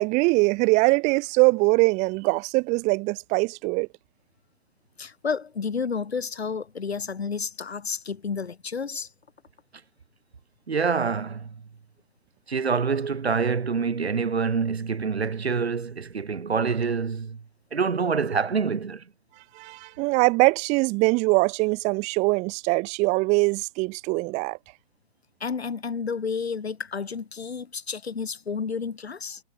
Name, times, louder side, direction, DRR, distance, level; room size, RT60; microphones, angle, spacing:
voice 1, 0.0-3.9 19.5-24.6, right 26 dB, 20° right, 2.8 m, -22 dB
voice 2, 5.0-9.1 25.4-29.4, left 5 dB, 85° left, 5.1 m, -31 dB
voice 3, 10.7-11.6 12.5-17.4 17.7-19.0, right 5 dB, 85° right, 4.4 m, -26 dB
hypercardioid pair, 150°, 31 cm